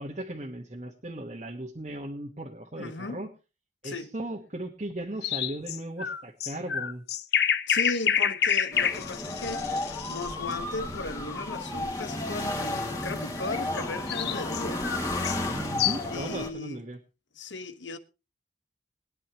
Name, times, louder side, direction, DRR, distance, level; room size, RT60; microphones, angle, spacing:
voice 1, 0.0-3.3 3.8-7.0 15.5-17.0, right 1 dB, 40° right, 1.3 m, -37 dB
voice 2, 2.8-3.2 3.8-4.1 7.7-14.9 16.1-16.8 17.4-18.0, left 3 dB, 85° left, 1.2 m, -36 dB
sound 1, 5.2-10.3 13.8-16.2, left 8 dB, 60° left, 0.7 m, -28 dB
sound 2, 8.7-16.5, left 2 dB, 20° left, 2.0 m, -33 dB
21.5 x 9.8 x 3.0 m
head